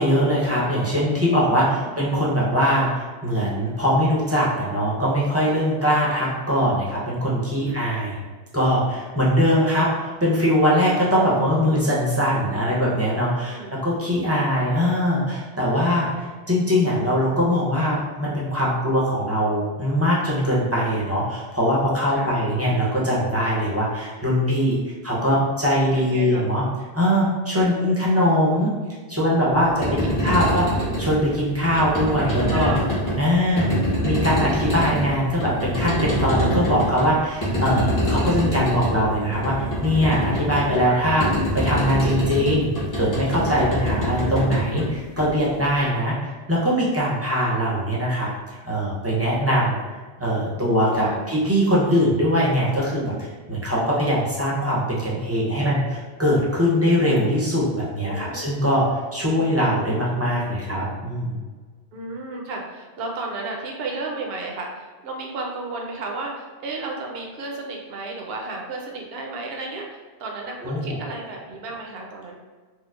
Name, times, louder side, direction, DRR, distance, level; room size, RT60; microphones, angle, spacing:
voice 1, 0.0-8.2 8.5-24.8 25.0-26.6 26.9-28.7 29.1-30.7 31.0-32.8 33.2-33.7 34.0-49.8 50.2-61.4 70.6-71.0, equal, 15° right, -6 dB, 0.5 m, -22 dB
voice 2, 13.5-13.8 20.8-21.1 22.1-22.4 26.0-26.4 27.5-28.1 29.8-30.5 32.1-32.9 33.3-33.8 45.2-45.6 50.9-51.2 58.1-58.4 59.2-60.0 61.9-72.4, right 3 dB, 70° right, 0 dB, 0.8 m, -34 dB
sound 1, 29.6-45.8, equal, 20° left, 0.7 m, -25 dB
4.3 x 2.1 x 2.4 m, 1.4 s
omnidirectional pair, 1.1 m